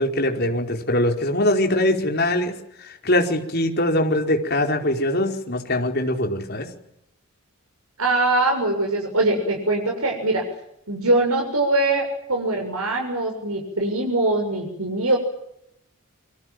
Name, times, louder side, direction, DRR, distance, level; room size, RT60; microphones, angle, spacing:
voice 1, 0.0-2.5 2.8-6.7, left 1 dB, 45° left, 3 dB, 4.9 m, -22 dB
voice 2, 8.0-10.4 10.9-15.2, right 2 dB, 85° right, 2 dB, 7.3 m, -22 dB
29.0 x 25.5 x 7.9 m, 0.79 s
head